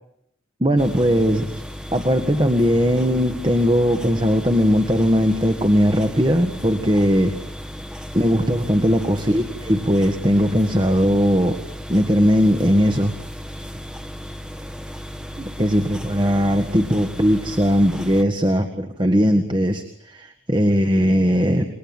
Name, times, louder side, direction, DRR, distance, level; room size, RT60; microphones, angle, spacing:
voice 1, 0.6-1.6 1.9-7.3 8.1-11.6 11.9-13.1 15.4-21.7, equal, 25° right, 6 dB, 1.9 m, -19 dB
sound 1, 0.8-18.2, equal, 5° right, 1.5 m, -35 dB
29.0 x 22.0 x 9.1 m, 0.76 s
head